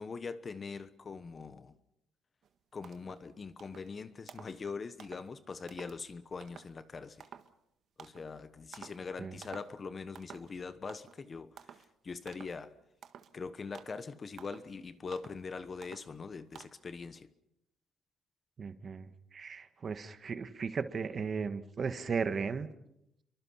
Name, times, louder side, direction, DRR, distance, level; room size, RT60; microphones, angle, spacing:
voice 1, 0.0-1.7 2.7-7.3 8.0-11.6 12.0-12.8 13.3-17.3, left 4 dB, 30° left, 1.1 m, -42 dB
sound 1, 2.4-2.5 2.8-3.2 3.6-3.9 4.3-4.6 5.0-5.3 5.7-6.0 6.4-6.7 7.2-7.5 8.0-8.3 8.7-9.1 9.4-9.8 10.1-10.6 10.9-11.2 11.6-11.9 12.3-12.6 13.0-13.3 13.7-14.1 14.4-14.7 15.1-15.4 15.8-16.2 16.5-16.7, right 8 dB, 55° right, 1.5 m, -52 dB
voice 2, 18.6-22.7, right 5 dB, 35° right, 1.5 m, -36 dB
29.5 x 23.5 x 5.8 m
cardioid pair, 140°, 0 cm